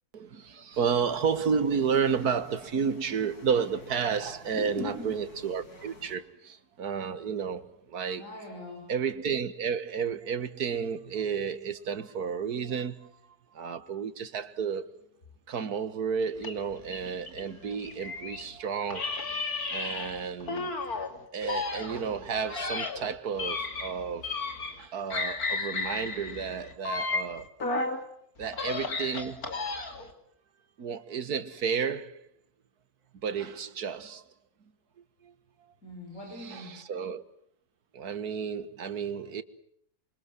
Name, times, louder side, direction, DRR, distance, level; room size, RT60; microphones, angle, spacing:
voice 1, 0.1-8.2 8.9-13.2 13.5-14.9 15.5-19.2 19.7-20.7 21.3-24.3 24.8-27.5 28.4-29.5 30.8-32.2 33.2-34.3 35.2-35.3 36.4-37.2 37.9-39.4, right 6 dB, 80° right, 2.0 m, -31 dB
sound 1, 0.7-6.2, left 1 dB, 90° left, 5.3 m, -52 dB
voice 2, 4.5-5.1 8.2-8.9 35.8-36.8, left 3 dB, 55° left, 7.0 m, -40 dB
sound 2, 16.4-18.5 18.9-21.1 21.4-24.8 25.1-28.0 28.4-30.1, left 3 dB, 70° left, 3.2 m, -33 dB
28.0 x 24.5 x 7.7 m
omnidirectional pair, 1.6 m